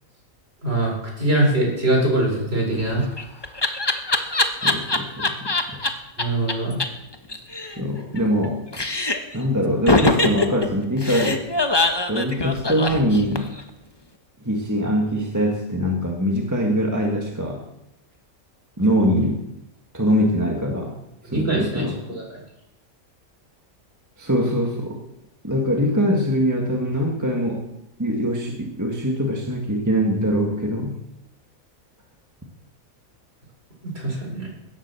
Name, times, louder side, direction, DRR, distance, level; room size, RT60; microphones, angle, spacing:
voice 1, 0.6-3.1 6.2-6.8 21.3-21.8 22.1-22.4 33.8-34.5, right 1 dB, 45° right, -2 dB, 5.3 m, -22 dB
Laughter, 2.8-5.9 6.2-6.3 6.5-6.6 6.8-6.9 7.1-8.5 8.7-9.4 9.9-13.6, left 2 dB, 20° left, 1.0 m, -22 dB
voice 2, 4.6-5.8 7.8-8.6 9.3-11.4 12.1-13.6 14.4-17.6 18.8-19.4 19.9-20.9 21.3-22.0 24.2-25.0 25.4-27.6 28.0-31.0, equal, 15° right, 0 dB, 1.6 m, -23 dB
17.0 x 7.4 x 7.0 m, 0.88 s
omnidirectional pair, 1.5 m